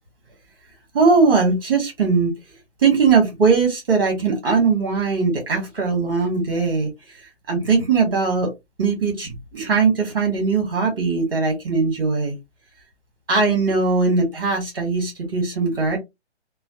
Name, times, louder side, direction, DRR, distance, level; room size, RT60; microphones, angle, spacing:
voice 1, 0.9-2.3 2.8-6.9 7.5-8.5 8.8-12.3 13.3-16.0, right 4 dB, 20° right, 0.9 m, -20 dB
2.3 x 2.0 x 2.7 m
hypercardioid pair, 180°, 35 cm